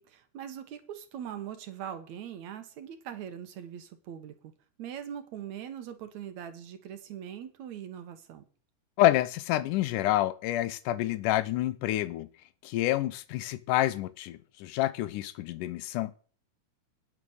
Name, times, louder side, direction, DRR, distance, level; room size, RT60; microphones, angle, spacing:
voice 1, 0.0-4.5 4.8-8.4, right 9 dB, 70° right, 2.2 m, -41 dB
voice 2, 9.0-12.3 12.6-16.1, left 14 dB, 90° left, 2.2 m, -28 dB
9.5 x 7.1 x 6.4 m
omnidirectional pair, 3.6 m